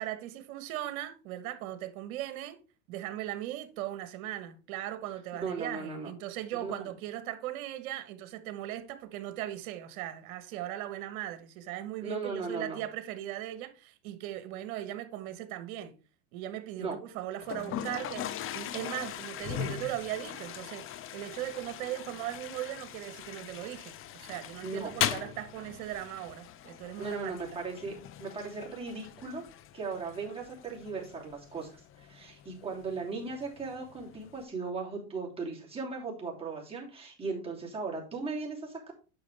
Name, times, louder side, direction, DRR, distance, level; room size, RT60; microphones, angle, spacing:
voice 1, 0.0-2.6 2.9-15.9 16.3-20.9 21.1-27.3, right 13 dB, 70° right, 1.4 m, -38 dB
voice 2, 5.4-6.1 6.6-6.9 12.0-12.8 16.8-17.0 24.6-24.9 27.0-29.4 29.7-38.9, right 4 dB, 15° right, 3.1 m, -37 dB
Toilet flush, 17.4-34.4, left 11 dB, 30° left, 0.6 m, -40 dB
8.8 x 6.1 x 3.4 m
supercardioid pair, 120°, 43 cm